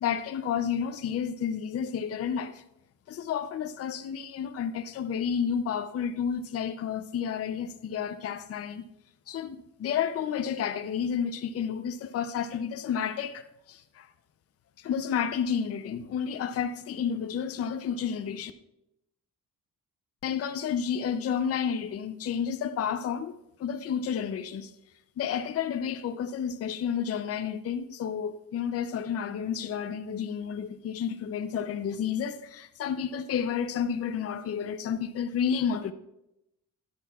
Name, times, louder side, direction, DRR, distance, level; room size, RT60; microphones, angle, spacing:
voice 1, 0.0-2.6 3.1-8.8 9.3-14.1 14.8-18.5 20.2-23.3 23.6-24.7 25.2-35.9, left 7 dB, 45° left, 0.5 m, -31 dB
11.5 x 10.5 x 2.3 m
cardioid pair, 150°, 34 cm